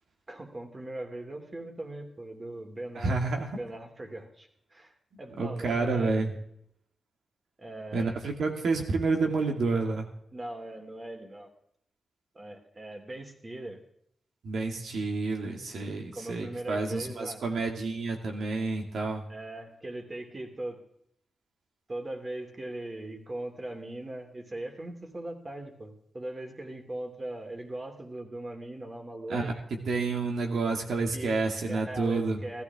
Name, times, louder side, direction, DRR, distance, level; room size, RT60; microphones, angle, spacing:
voice 1, 0.3-3.2 3.5-4.9 5.2-6.4 7.6-8.2 10.3-11.5 12.3-13.8 16.1-17.4 19.3-20.8 21.9-29.5 31.1-31.3 31.7-32.6, right 1 dB, 35° right, 4 dB, 2.8 m, -40 dB
voice 2, 3.0-3.6 5.4-6.3 7.9-10.1 14.4-19.2 29.3-29.5 29.9-32.4, right 3 dB, 80° right, 3 dB, 2.2 m, -29 dB
15.5 x 13.5 x 3.6 m, 0.71 s
cardioid pair, 65°, 0 cm